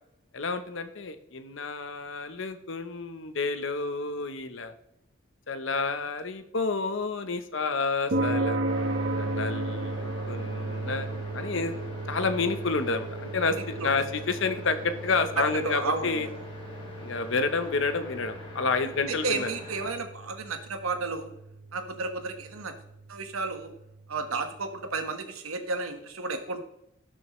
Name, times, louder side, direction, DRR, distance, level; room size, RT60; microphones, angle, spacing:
voice 1, 0.3-4.7 5.5-8.6 9.2-11.1 11.3-11.7 12.1-16.3 17.0-19.5, left 4 dB, 60° left, 10 dB, 0.8 m, -29 dB
sound 1, 8.1-24.6, right 2 dB, 60° right, 1.1 m, -35 dB
sound 2, 8.6-19.9, left 3 dB, 25° left, 2.3 m, -44 dB
voice 2, 13.5-13.9 15.4-16.3 19.1-21.3 21.7-22.7 23.1-23.7 24.1-26.6, right 3 dB, 90° right, 6 dB, 1.3 m, -32 dB
17.5 x 6.3 x 3.1 m, 0.79 s
head